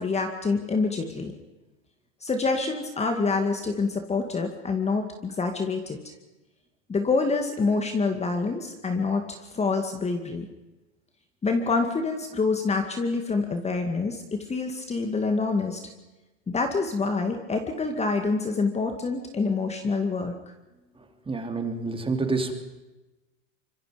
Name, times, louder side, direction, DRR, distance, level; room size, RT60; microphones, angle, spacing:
voice 1, 0.0-1.3 2.2-6.0 6.9-10.5 11.4-15.8 16.5-20.3, left 4 dB, 15° left, 5 dB, 2.2 m, -26 dB
voice 2, 21.3-22.5, right 3 dB, 15° right, 5 dB, 3.2 m, -28 dB
25.5 x 23.0 x 5.3 m, 1.1 s
hypercardioid pair, 115°, 37 cm